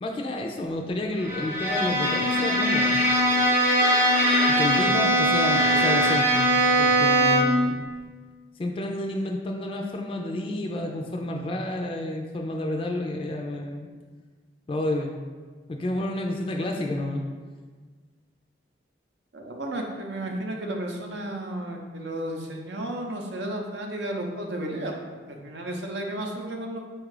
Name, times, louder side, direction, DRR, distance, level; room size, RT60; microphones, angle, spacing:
voice 1, 0.0-3.0 4.5-6.5 6.8-7.8 8.6-13.9 14.7-15.1 15.7-17.3, left 1 dB, 30° left, 2 dB, 0.3 m, -30 dB
Bowed string instrument, 1.2-7.7, equal, 10° right, 0.6 m, -21 dB
voice 2, 19.3-25.0 25.3-26.8, right 1 dB, 80° right, 2 dB, 0.6 m, -33 dB
4.4 x 2.4 x 4.8 m, 1.4 s
head